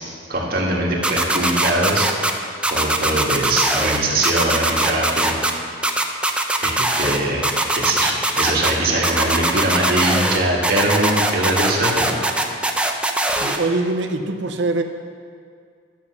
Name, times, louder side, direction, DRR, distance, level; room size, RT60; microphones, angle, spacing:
voice 1, 0.3-2.1 2.7-5.4 6.6-12.3, right 1 dB, 55° right, -3 dB, 1.9 m, -22 dB
sound 1, 1.0-2.3 2.6-4.0 4.2-5.5 5.8-7.2 7.4-8.7 9.0-10.4 10.6-13.6, right 2 dB, 5° right, 0.6 m, -20 dB
voice 2, 13.4-14.8, right 2 dB, 80° right, 6 dB, 0.8 m, -23 dB
11.0 x 7.5 x 5.8 m, 2.2 s
head